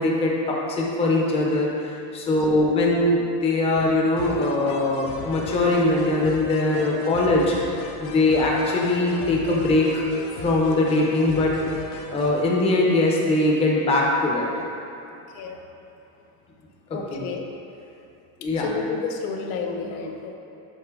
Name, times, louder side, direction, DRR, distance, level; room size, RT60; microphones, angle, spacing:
voice 1, 0.0-1.7 2.1-7.5 8.0-10.1 10.4-11.5 12.1-14.4 17.1-17.2 18.4-18.7, left 2 dB, 15° left, -2 dB, 0.6 m, -21 dB
sound 1, 4.2-12.4, left 4 dB, 50° left, 0.7 m, -37 dB
voice 2, 16.9-17.4 18.6-20.4, left 5 dB, 85° left, 3 dB, 0.9 m, -31 dB
8.2 x 5.1 x 3.6 m, 2.8 s
cardioid pair, 170°, 41 cm